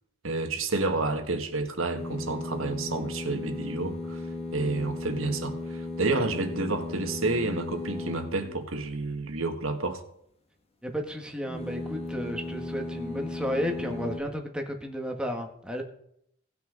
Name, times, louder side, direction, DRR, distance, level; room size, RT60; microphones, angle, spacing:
voice 1, 0.2-10.0, right 3 dB, 70° right, 1.7 m, -30 dB
sound 1, 1.9-8.8 11.4-14.2, left 2 dB, 30° left, 1.5 m, -36 dB
voice 2, 10.8-15.8, equal, 5° right, 1.6 m, -33 dB
18.5 x 6.3 x 3.9 m
head